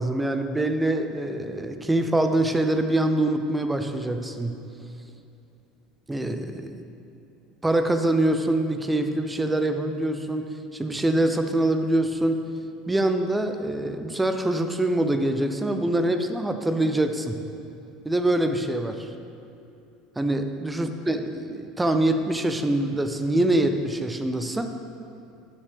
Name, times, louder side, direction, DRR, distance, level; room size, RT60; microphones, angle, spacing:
voice 1, 0.0-4.6 6.1-6.8 7.6-12.4 12.9-17.4 18.0-19.1 20.2-24.7, right 1 dB, 10° right, 7 dB, 0.7 m, -24 dB
12.5 x 7.2 x 3.5 m, 2.7 s
hypercardioid pair, 75°, 0 cm